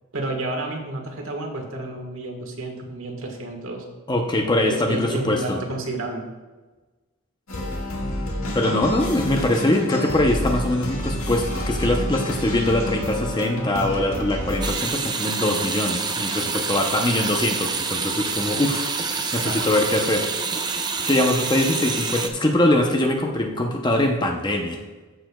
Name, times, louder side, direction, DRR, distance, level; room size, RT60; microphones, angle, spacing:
voice 1, 0.1-3.8 4.6-6.2 8.7-8.9 19.2-19.7 20.0-20.1, right 2 dB, 65° right, 2 dB, 1.5 m, -30 dB
voice 2, 4.1-5.6 8.5-18.9 19.3-20.3 21.1-24.8, left 1 dB, 20° left, 2 dB, 0.7 m, -22 dB
sound 1, 7.5-14.7, left 1 dB, 75° left, 1.8 m, -29 dB
sound 2, 14.6-22.3, right 4 dB, 20° right, 0.4 m, -27 dB
14.0 x 6.7 x 2.3 m, 1.2 s
head